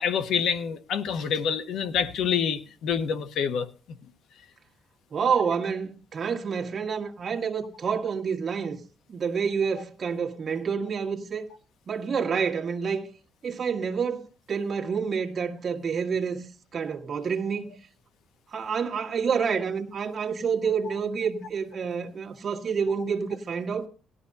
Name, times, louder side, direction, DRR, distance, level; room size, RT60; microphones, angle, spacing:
voice 1, 0.0-3.7, left 7 dB, 75° left, 1.1 m, -27 dB
voice 2, 5.1-8.8 9.1-11.5 11.9-13.1 13.4-16.5 16.7-17.7 18.5-23.9, right 6 dB, 35° right, 1.5 m, -28 dB
18.0 x 12.0 x 2.7 m
cardioid pair, 140°, 0 cm